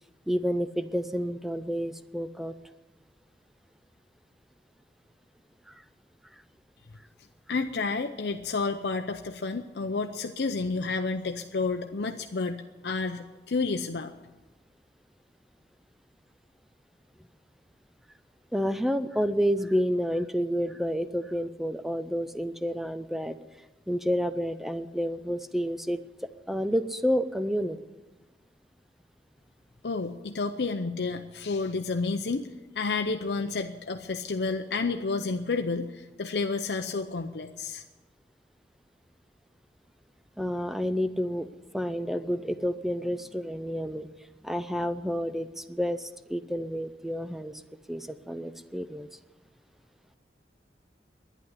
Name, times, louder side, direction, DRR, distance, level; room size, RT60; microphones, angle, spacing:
voice 1, 0.3-2.5 5.7-5.8 18.5-23.4 23.9-26.0 26.5-27.8 40.4-44.1 44.4-47.6 47.9-49.1, equal, ahead, 11 dB, 0.5 m, -29 dB
voice 2, 7.5-14.1 29.8-32.5 32.7-37.8, left 4 dB, 75° left, 5 dB, 0.6 m, -30 dB
11.5 x 10.0 x 9.5 m, 1.2 s
head